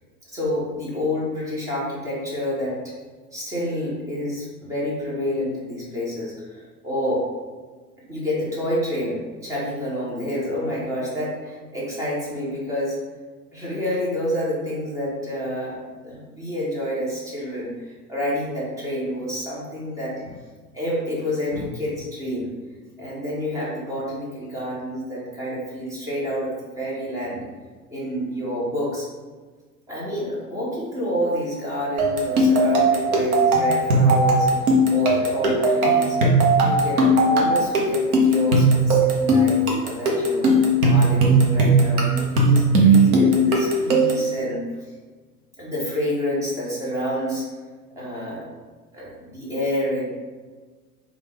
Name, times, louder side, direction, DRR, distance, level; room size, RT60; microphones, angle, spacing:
voice 1, 0.3-2.9 3.3-7.3 8.1-13.0 13.5-20.3 20.7-22.5 23.0-27.4 27.9-29.1 29.9-36.2 36.6-40.5 40.9-44.6 45.6-47.4 48.0-48.5 48.9-50.0, equal, 5° right, -7 dB, 0.5 m, -28 dB
sound 1, 32.0-44.3, right 2 dB, 60° right, 0.8 m, -18 dB
3.2 x 2.3 x 3.2 m, 1.4 s
figure-of-eight pair, 95°, 48 cm